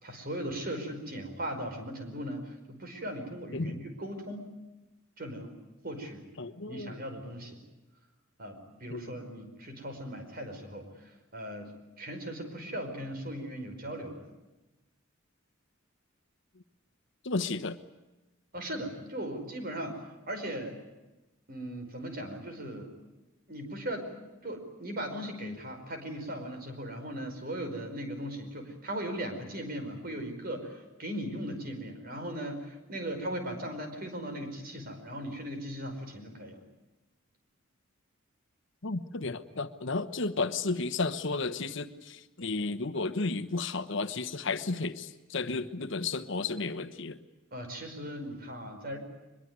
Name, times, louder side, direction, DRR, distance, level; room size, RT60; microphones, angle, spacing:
voice 1, 0.0-4.5 5.2-5.5 5.8-6.2 6.7-7.6 8.4-11.7 12.0-14.2 18.5-20.0 20.3-20.8 21.5-22.9 23.5-24.2 24.4-36.6 47.5-49.0, right 1 dB, 45° right, 6 dB, 5.1 m, -38 dB
voice 2, 6.4-6.9 8.9-9.1 17.2-17.8 38.8-47.2, left 3 dB, 65° left, 11 dB, 1.2 m, -33 dB
23.5 x 22.0 x 9.5 m, 1.0 s
head